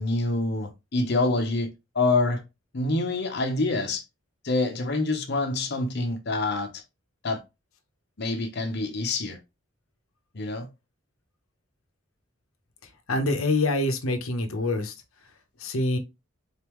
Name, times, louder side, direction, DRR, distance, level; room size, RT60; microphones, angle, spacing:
voice 1, 0.0-2.4 2.7-4.0 4.4-6.8 7.2-7.4 8.2-9.4 10.3-10.7, left 2 dB, 55° left, 0.8 m, -26 dB
voice 2, 13.1-14.9 15.6-16.0, left 2 dB, 85° left, 0.9 m, -25 dB
4.1 x 3.5 x 3.0 m
head